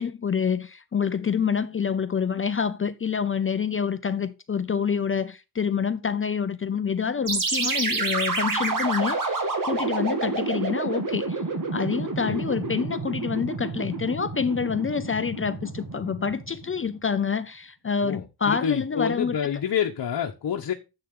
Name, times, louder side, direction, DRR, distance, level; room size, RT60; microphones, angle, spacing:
voice 1, 0.0-11.4 11.7-19.6, left 6 dB, 30° left, 0.6 m, -27 dB
sound 1, 7.3-16.8, right 3 dB, 50° right, 2.7 m, -29 dB
voice 2, 18.0-20.7, left 8 dB, 60° left, 1.3 m, -28 dB
10.5 x 7.9 x 3.8 m
wide cardioid pair, 125°, 41 cm